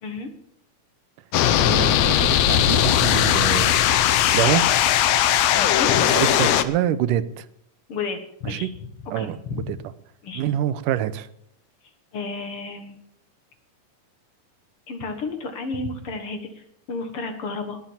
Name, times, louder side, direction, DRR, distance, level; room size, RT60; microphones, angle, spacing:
sound 1, 1.3-6.6, left 11 dB, 70° left, 1.7 m, -19 dB
voice 1, 1.6-3.8 4.3-4.6 6.0-7.5 8.5-8.7 9.1-9.4 9.7-9.8 10.4-11.3, right 11 dB, 85° right, 15 dB, 2.3 m, -25 dB
voice 2, 5.5-6.1 7.9-8.7 9.0-9.7 10.2-10.5 12.1-13.0 14.9-17.8, left 4 dB, 50° left, 7 dB, 2.1 m, -32 dB
19.5 x 7.5 x 7.3 m, 0.73 s
omnidirectional pair, 3.7 m